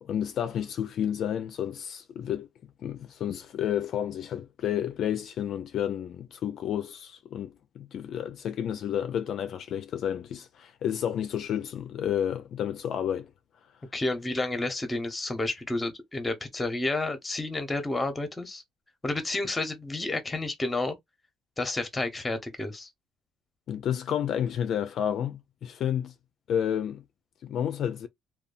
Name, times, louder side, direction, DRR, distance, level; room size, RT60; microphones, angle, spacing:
voice 1, 0.0-2.5 2.8-13.3 23.7-26.1 26.5-27.0 27.4-28.1, left 9 dB, 60° left, 0.4 m, -31 dB
voice 2, 13.9-18.6 19.0-21.0 21.6-22.9, left 2 dB, 15° left, 0.8 m, -30 dB
2.6 x 2.2 x 2.4 m
cardioid pair, 110°, 0 cm